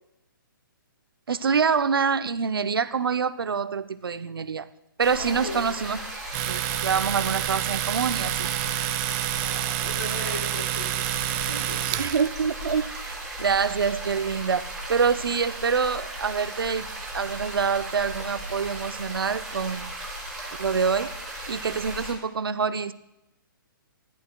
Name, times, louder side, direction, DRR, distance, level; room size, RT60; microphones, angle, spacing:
voice 1, 1.3-4.7 5.0-6.0 6.4-8.5 12.0-16.9 17.1-19.9 20.6-21.1 21.5-22.9, right 6 dB, 90° right, 13 dB, 0.6 m, -26 dB
sound 1, 5.0-22.1, right 1 dB, ahead, 2.7 m, -36 dB
voice 2, 5.2-5.9 9.5-12.1, left 1 dB, 80° left, 0 dB, 4.4 m, -38 dB
Domestic sounds home sounds, 6.3-12.3, right 14 dB, 20° right, 0.4 m, -28 dB
14.0 x 11.0 x 2.2 m, 0.89 s
hypercardioid pair, 145°, 12 cm